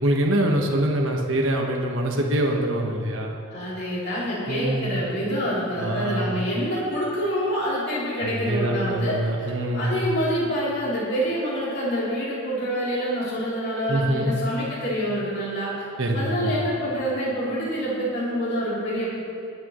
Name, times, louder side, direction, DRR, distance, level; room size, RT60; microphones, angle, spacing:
voice 1, 0.0-3.3 4.5-5.0 5.8-6.4 8.2-9.9 13.9-14.3 16.0-16.2 16.4-16.6, right 1 dB, 60° right, 0 dB, 1.3 m, -24 dB
voice 2, 3.5-15.9 16.1-19.2, equal, 50° left, -8 dB, 3.3 m, -27 dB
22.0 x 8.9 x 3.1 m, 2.5 s
head